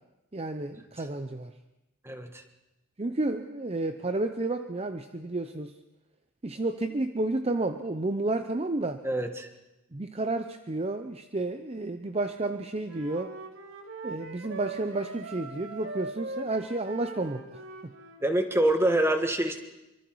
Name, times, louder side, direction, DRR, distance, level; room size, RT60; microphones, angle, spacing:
voice 1, 0.3-1.5 3.0-5.7 6.4-9.0 9.9-13.4 14.0-17.9, right 2 dB, 30° right, 8 dB, 0.7 m, -31 dB
voice 2, 2.0-2.4 9.0-9.5 18.2-19.6, right 1 dB, 10° right, 6 dB, 1.5 m, -26 dB
Wind instrument woodwind instrument, 12.9-18.2, right 3 dB, 85° right, 2.6 m, -41 dB
25.5 x 24.5 x 4.7 m, 0.96 s
head